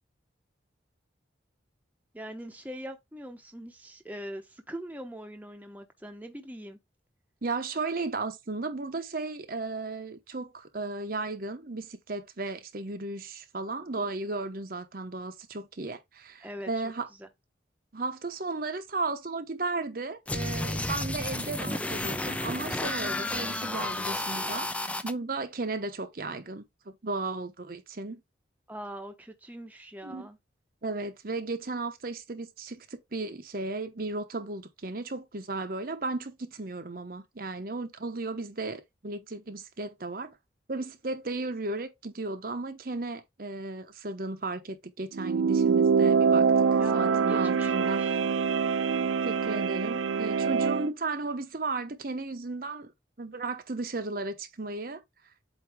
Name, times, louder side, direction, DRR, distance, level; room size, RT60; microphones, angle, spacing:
voice 1, 2.1-6.8 16.4-16.7 17.2-17.3 28.7-30.4 46.8-48.2, equal, 10° right, 0.8 m, -42 dB
voice 2, 7.4-17.1 17.9-28.2 30.0-30.3 30.8-40.4 40.7-46.5 46.9-48.0 49.2-52.9 53.2-55.0, right 3 dB, 50° right, 0.9 m, -35 dB
sound 1, 20.3-25.1, left 1 dB, 5° left, 0.4 m, -32 dB
sound 2, 45.1-50.9, right 5 dB, 90° right, 0.4 m, -24 dB
8.1 x 2.7 x 4.8 m
head